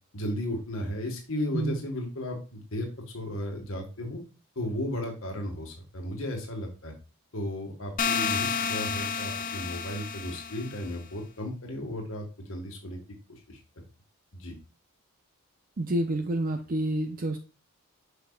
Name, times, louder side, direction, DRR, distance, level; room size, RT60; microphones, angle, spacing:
voice 1, 0.1-2.9 3.1-4.2 4.5-6.9 7.3-13.0 13.3-13.6 14.3-14.5, left 1 dB, 65° left, 1 dB, 1.6 m, -34 dB
sound 1, 8.0-10.9, left 6 dB, 40° left, 0.5 m, -30 dB
voice 2, 15.8-17.4, right 1 dB, 40° right, 6 dB, 0.6 m, -28 dB
6.8 x 5.8 x 2.3 m, 0.33 s
head